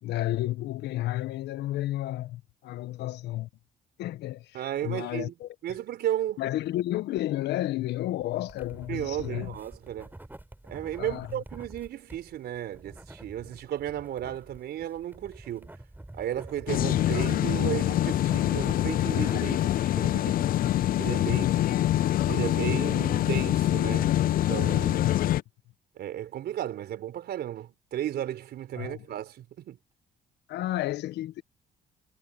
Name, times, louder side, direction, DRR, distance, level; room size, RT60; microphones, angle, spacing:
voice 1, 0.0-3.5 4.0-5.5 6.4-9.5 11.0-11.3 21.2-21.7 28.8-29.0 30.5-31.4, left 15 dB, 75° left, 1.4 m, -32 dB
voice 2, 4.5-5.3 5.6-6.4 8.9-10.1 10.6-15.8 16.1-20.3 21.0-21.5 22.3-25.1 26.0-29.8, right 11 dB, 70° right, 4.6 m, -34 dB
sound 1, 8.4-19.7, right 1 dB, 10° right, 6.5 m, -48 dB
sound 2, 16.7-25.4, left 13 dB, 55° left, 0.4 m, -25 dB
supercardioid pair, 65°, 18 cm